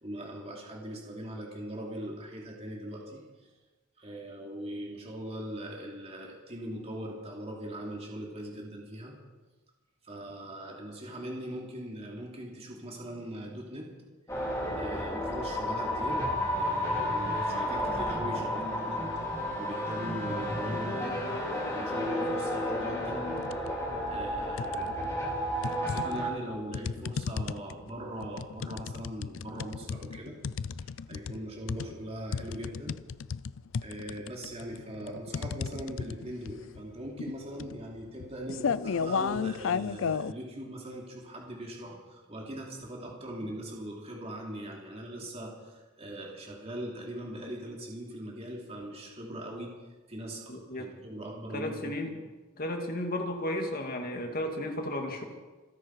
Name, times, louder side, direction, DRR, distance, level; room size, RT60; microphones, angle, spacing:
voice 1, 0.0-3.2 4.0-9.2 10.0-14.0 14.8-16.3 16.5-19.0 19.6-21.2 21.7-23.3 24.1-25.0 25.8-30.4 30.8-33.0 33.8-49.8 50.1-52.0, right 1 dB, 30° right, -1 dB, 2.9 m, -40 dB
sound 1, 14.3-26.3, equal, 15° left, 4.2 m, -32 dB
sound 2, 23.4-23.8 24.1-25.1 25.6-40.3, left 6 dB, 70° left, 0.4 m, -34 dB
voice 2, 50.5-50.9 51.5-52.1 52.6-55.2, left 1 dB, 45° left, 2 dB, 2.5 m, -33 dB
27.0 x 10.5 x 4.8 m, 1.2 s
head